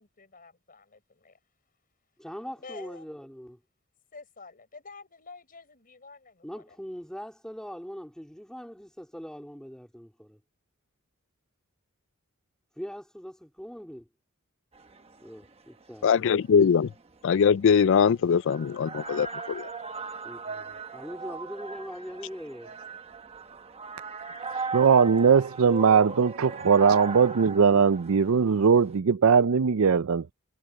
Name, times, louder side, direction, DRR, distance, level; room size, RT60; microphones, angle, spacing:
voice 1, 0.0-1.4 2.6-3.1 4.1-6.8, left 4 dB, 40° left, 5.3 m, -48 dB
voice 2, 2.2-3.6 6.4-10.4 12.7-14.1 15.2-16.3 20.2-22.7 26.0-26.1, equal, 5° left, 3.4 m, -41 dB
sound 1, 14.7-29.0, right 4 dB, 30° right, 1.1 m, -39 dB
voice 3, 16.0-16.9 17.2-19.7, left 6 dB, 60° left, 0.4 m, -22 dB
voice 4, 24.7-30.3, right 6 dB, 70° right, 0.5 m, -20 dB
head